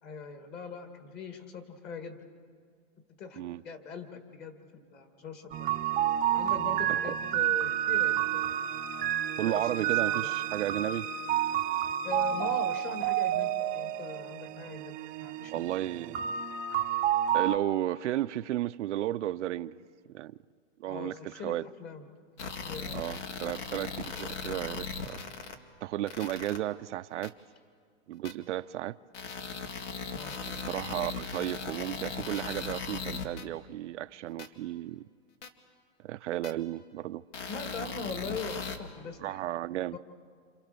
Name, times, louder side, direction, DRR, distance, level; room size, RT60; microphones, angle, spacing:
voice 1, 0.0-2.2 3.2-5.6 6.3-8.5 9.4-10.3 12.0-14.9 15.2-15.7 20.9-22.1 22.6-23.0 30.1-30.4 37.5-39.4 39.9-40.0, left 5 dB, 30° left, 2.3 m, -41 dB
sound 1, 5.5-17.6, right 11 dB, 25° right, 0.7 m, -30 dB
voice 2, 9.4-11.1 15.5-16.3 17.3-19.8 20.1-20.4 20.8-21.6 22.9-25.2 25.8-27.3 28.1-29.0 30.5-35.0 36.0-37.2 39.2-40.0, right 14 dB, 80° right, 0.7 m, -33 dB
sound 2, 22.4-25.5 26.1-26.6 27.2-27.3 28.2-28.3 29.1-33.4 34.4-34.5 35.4-35.5 36.4-36.5 37.3-38.8, left 5 dB, 85° left, 2.3 m, -38 dB
28.0 x 28.0 x 6.8 m
supercardioid pair, 150°, 35 cm